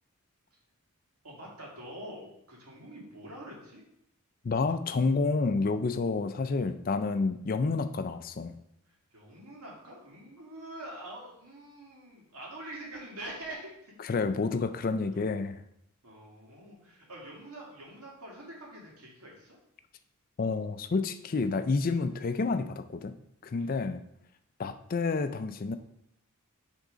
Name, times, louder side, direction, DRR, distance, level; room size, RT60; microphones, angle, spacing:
voice 1, 1.2-3.8 8.9-13.9 15.1-15.3 16.0-19.6 23.6-23.8, right 1 dB, 85° right, -3 dB, 2.1 m, -45 dB
voice 2, 4.4-8.5 14.1-15.6 20.4-23.2 23.4-24.0 24.6-25.8, left 4 dB, 40° left, 10 dB, 0.4 m, -29 dB
6.5 x 3.6 x 5.1 m, 0.76 s
head